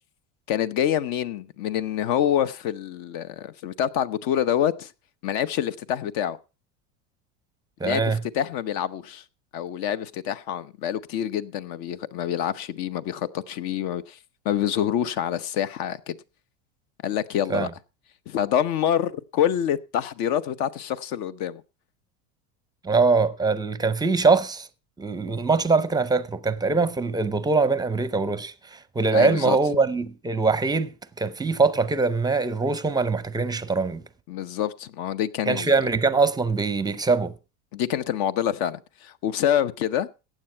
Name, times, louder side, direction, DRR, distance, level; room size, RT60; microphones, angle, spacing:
voice 1, 0.5-4.9 5.2-6.4 7.8-9.2 9.5-14.2 14.4-16.2 17.0-17.7 18.3-21.6 29.1-29.6 34.3-35.7 37.7-40.1, left 10 dB, 55° left, 0.9 m, -26 dB
voice 2, 7.8-8.2 17.5-17.7 22.8-24.7 25.0-30.9 31.2-34.0 35.5-37.3, right 4 dB, 10° right, 0.6 m, -23 dB
15.0 x 9.0 x 4.5 m
supercardioid pair, 125°, 43 cm